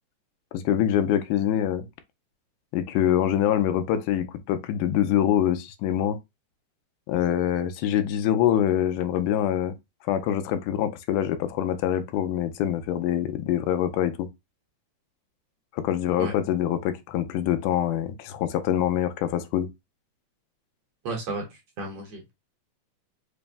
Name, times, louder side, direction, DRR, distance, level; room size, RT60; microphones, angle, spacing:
voice 1, 0.5-1.9 2.7-6.2 7.1-9.7 10.1-14.3 15.7-19.7, left 10 dB, 85° left, 2.1 m, -25 dB
voice 2, 21.1-21.4 21.8-22.3, right 2 dB, 65° right, 1.6 m, -32 dB
5.0 x 2.0 x 3.3 m
omnidirectional pair, 3.6 m